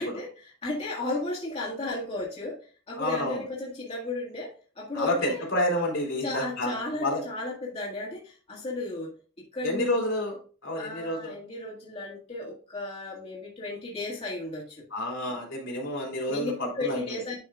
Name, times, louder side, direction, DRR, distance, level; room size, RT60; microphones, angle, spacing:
voice 1, 0.0-2.6 2.9-4.5 4.8-5.4 6.2-9.1 9.5-10.0 10.8-14.8 16.3-17.4, left 2 dB, 30° left, -4 dB, 1.9 m, -34 dB
voice 2, 3.0-3.4 4.9-7.2 9.6-11.3 14.9-17.1, left 1 dB, 70° left, -2 dB, 3.3 m, -29 dB
10.5 x 5.2 x 2.4 m, 0.39 s
head